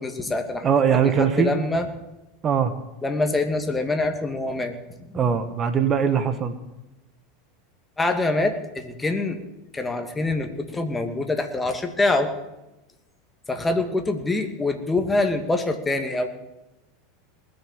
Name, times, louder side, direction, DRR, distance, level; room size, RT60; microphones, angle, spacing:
voice 1, 0.0-0.7 1.2-1.9 3.0-4.8 8.0-9.4 9.7-12.3 13.5-16.3, left 2 dB, 15° left, 5 dB, 2.2 m, -25 dB
voice 2, 0.6-1.5 2.4-2.7 5.1-6.6, right 7 dB, 35° right, 10 dB, 1.6 m, -21 dB
20.0 x 6.9 x 9.1 m, 0.96 s
hypercardioid pair, 90°, 0 cm